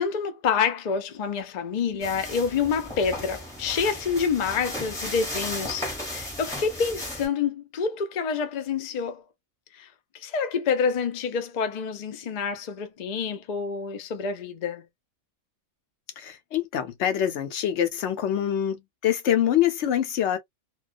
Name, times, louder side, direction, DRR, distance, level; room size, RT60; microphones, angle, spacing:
voice 1, 0.0-9.2 9.7-9.9 10.1-14.9, left 6 dB, 90° left, 0.3 m, -27 dB
sound 1, 2.0-7.3, left 1 dB, 5° left, 0.9 m, -35 dB
voice 2, 16.2-20.4, left 10 dB, 65° left, 0.9 m, -25 dB
2.3 x 2.2 x 2.4 m
omnidirectional pair, 1.4 m